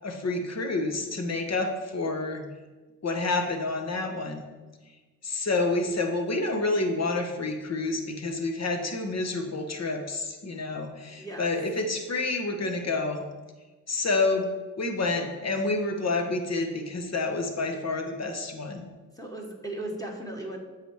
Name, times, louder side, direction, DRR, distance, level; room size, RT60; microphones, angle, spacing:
voice 1, 0.0-2.5 3.0-4.4 5.2-13.3 13.9-14.5 14.8-18.8, left 3 dB, 45° left, 5 dB, 1.3 m, -28 dB
voice 2, 11.2-11.5 19.2-20.6, right 1 dB, 10° left, 0 dB, 1.7 m, -36 dB
7.6 x 5.1 x 4.7 m, 1.2 s
supercardioid pair, 50°, 37 cm